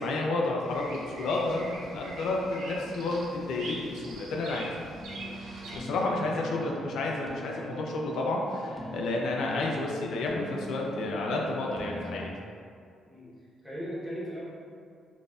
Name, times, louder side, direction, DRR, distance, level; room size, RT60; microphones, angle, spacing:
voice 1, 0.0-4.7 5.7-12.3, left 2 dB, 75° left, -1 dB, 0.4 m, -31 dB
Bird vocalization bird call bird song, 0.7-5.8, right 2 dB, 85° right, 0.6 m, -43 dB
sound 1, 5.0-12.3, equal, 10° left, 0.5 m, -42 dB
voice 2, 6.1-6.9 13.1-13.3 13.6-14.4, equal, 5° right, -9 dB, 1.2 m, -38 dB
3.9 x 2.5 x 2.4 m, 2.3 s
cardioid pair, 90°, 0 cm